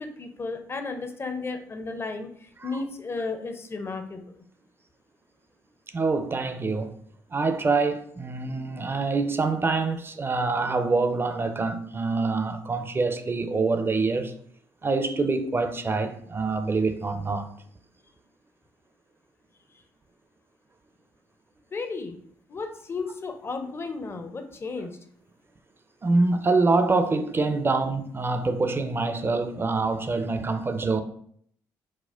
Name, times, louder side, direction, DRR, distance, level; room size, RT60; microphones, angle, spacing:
voice 1, 0.0-4.3 21.7-22.2 22.5-25.0, left 4 dB, 30° left, 0.5 m, -34 dB
voice 2, 5.9-7.0 7.3-14.3 14.8-17.5 26.0-31.0, right 3 dB, 25° right, 0.4 m, -25 dB
4.2 x 2.1 x 2.4 m
hypercardioid pair, 55°, 9 cm